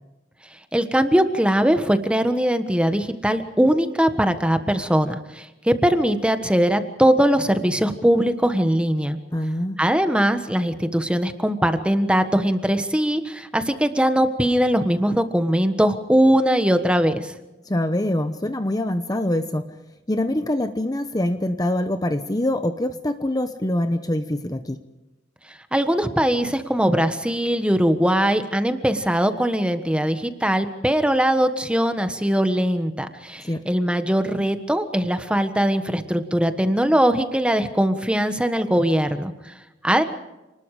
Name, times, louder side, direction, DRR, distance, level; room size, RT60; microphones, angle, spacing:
voice 1, 0.7-9.2 9.8-17.3 25.7-39.3 39.8-40.0, equal, 5° right, 9 dB, 1.4 m, -21 dB
voice 2, 9.3-9.8 17.7-19.6 20.1-24.8 33.4-33.6, left 1 dB, 20° left, 8 dB, 0.9 m, -24 dB
29.5 x 20.0 x 5.0 m, 1.0 s
head